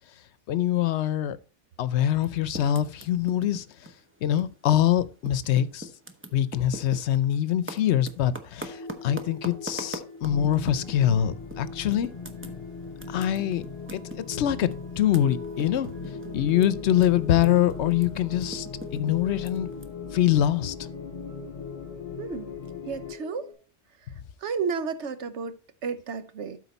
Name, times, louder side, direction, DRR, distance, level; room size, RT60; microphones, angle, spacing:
voice 1, 0.5-1.4 1.8-3.7 4.2-5.9 6.3-12.1 13.1-13.6 13.9-14.7 15.0-15.9 16.3-18.7 18.9-19.7 20.1-20.7, left 11 dB, 80° left, 0.9 m, -24 dB
Typing, 2.1-4.9 5.2-11.1 11.5-11.6 11.9-17.0 17.3-19.8, right 1 dB, 15° right, 0.8 m, -41 dB
sound 1, 8.6-23.5, left 4 dB, 15° left, 3.8 m, -42 dB
sound 2, 10.2-23.1, left 5 dB, 50° left, 0.5 m, -40 dB
voice 2, 22.2-22.5 22.9-23.5 24.4-26.6, right 5 dB, 90° right, 1.1 m, -32 dB
12.5 x 4.6 x 4.1 m
omnidirectional pair, 1.1 m